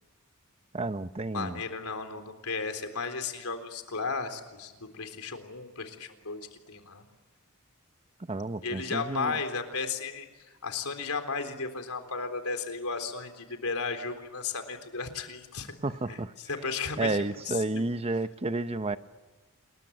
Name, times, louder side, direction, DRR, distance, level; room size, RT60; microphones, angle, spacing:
voice 1, 0.7-1.6 8.3-9.4 15.8-16.3 17.0-19.0, right 2 dB, 30° right, 0.8 m, -31 dB
voice 2, 1.3-7.0 8.6-10.3 10.6-15.7 16.1-17.8, left 4 dB, 90° left, 3.8 m, -34 dB
29.0 x 21.5 x 9.4 m
head